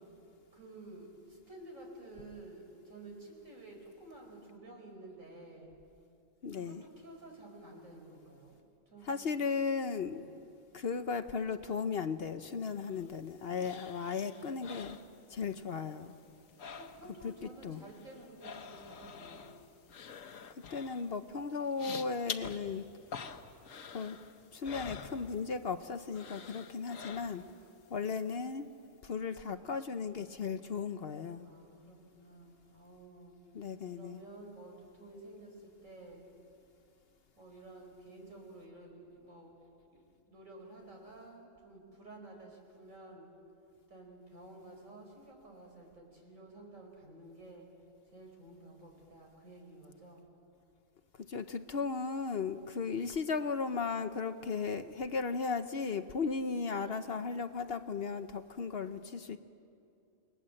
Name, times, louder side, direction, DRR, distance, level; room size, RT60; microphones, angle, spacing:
voice 1, 0.5-5.7 6.5-8.6 8.9-9.5 10.0-10.3 16.6-19.4 26.7-27.9 31.4-36.3 37.4-43.3 43.9-47.7 48.1-50.3, right 2 dB, 80° right, 0 dB, 5.1 m, -52 dB
voice 2, 6.4-6.8 9.1-10.2 10.7-15.0 15.3-16.1 17.2-17.8 20.7-22.9 23.9-24.2 24.5-27.4 27.9-28.7 29.0-31.5 33.5-34.2 51.2-59.4, left 5 dB, 55° left, 9 dB, 0.9 m, -36 dB
sound 1, 12.7-15.7 16.0-17.3 17.6-25.8 26.1-27.6 28.0-28.1, left 6 dB, 85° left, 1.4 m, -47 dB
28.5 x 20.0 x 7.7 m, 2.5 s
omnidirectional pair, 1.4 m